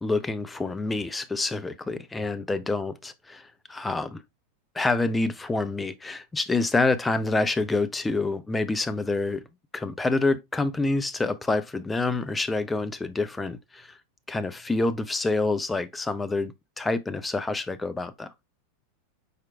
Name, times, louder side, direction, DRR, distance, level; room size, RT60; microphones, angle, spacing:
voice 1, 0.0-4.2 4.7-9.4 9.7-14.0 14.3-18.3, left 3 dB, 10° left, 0.4 m, -27 dB
4.9 x 4.4 x 2.2 m
figure-of-eight pair, 90°, 0 cm